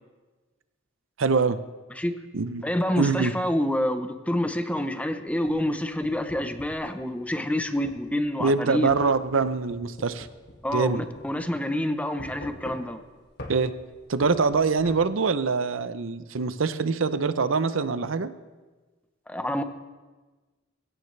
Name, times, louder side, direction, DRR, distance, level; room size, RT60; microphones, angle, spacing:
voice 1, 1.2-1.6 2.3-2.6 3.0-3.3 8.4-10.3 10.7-11.0 13.5-13.7 14.1-18.3, right 4 dB, 70° right, 13 dB, 0.6 m, -24 dB
voice 2, 2.6-8.9 10.6-13.0 19.3-19.6, left 1 dB, 5° left, 8 dB, 0.8 m, -27 dB
sound 1, 5.4-6.9 7.8-8.0 8.9-10.9 11.2-11.3 12.2-13.1 13.4-13.6 14.2-15.0, left 1 dB, 55° left, 2.0 m, -42 dB
21.5 x 16.5 x 3.3 m, 1.3 s
head